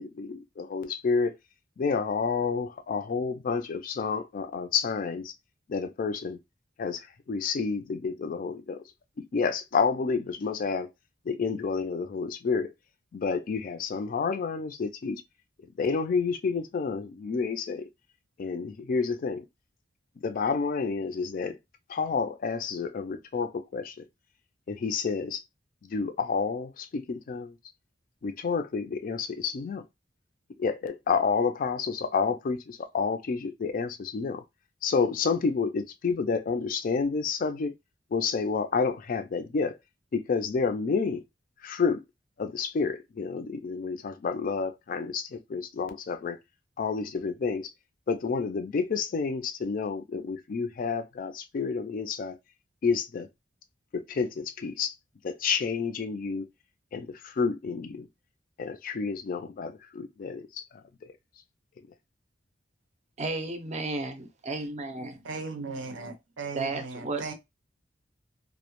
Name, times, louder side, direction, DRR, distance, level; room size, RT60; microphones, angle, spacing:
voice 1, 0.0-1.4 1.8-5.3 5.7-6.4 6.8-8.8 9.3-10.9 11.3-12.7 13.1-15.2 15.8-17.9 18.4-19.4 20.2-21.6 21.9-24.0 24.7-25.4 25.8-27.6 28.2-29.8 30.6-34.4 34.8-37.7 38.1-39.8 40.1-41.2 41.6-42.0 42.4-46.4 46.8-47.7 48.1-52.4 52.8-53.3 53.9-54.9 55.2-56.5 56.9-58.1 58.6-61.1, left 5 dB, 45° left, 0.4 m, -29 dB
voice 2, 63.2-65.2 66.5-67.3, right 3 dB, 40° right, 0.5 m, -33 dB
voice 3, 65.2-67.3, right 3 dB, 90° right, 0.6 m, -37 dB
2.1 x 2.0 x 2.9 m
head